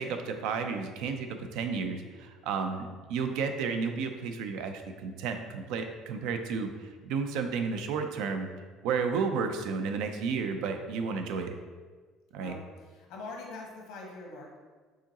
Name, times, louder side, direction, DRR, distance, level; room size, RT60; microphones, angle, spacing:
voice 1, 0.0-8.5 8.8-11.5 12.3-12.5, right 5 dB, 80° right, 6 dB, 0.5 m, -32 dB
voice 2, 12.4-14.6, left 3 dB, 85° left, -1 dB, 1.2 m, -43 dB
4.8 x 3.8 x 2.9 m, 1.4 s
cardioid pair, 120°, 0 cm